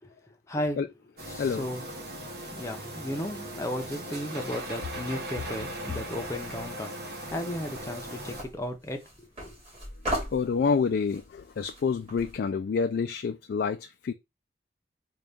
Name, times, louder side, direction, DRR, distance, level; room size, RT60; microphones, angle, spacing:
voice 1, 0.5-0.8 1.3-1.8 2.5-9.6, left 1 dB, 15° left, 0.6 m, -35 dB
sound 1, 1.2-8.4, right 1 dB, 65° right, 1.2 m, -38 dB
sound 2, 7.3-12.4, equal, 35° right, 2.3 m, -38 dB
voice 2, 10.3-14.1, left 5 dB, 60° left, 0.3 m, -28 dB
3.9 x 2.3 x 3.4 m
head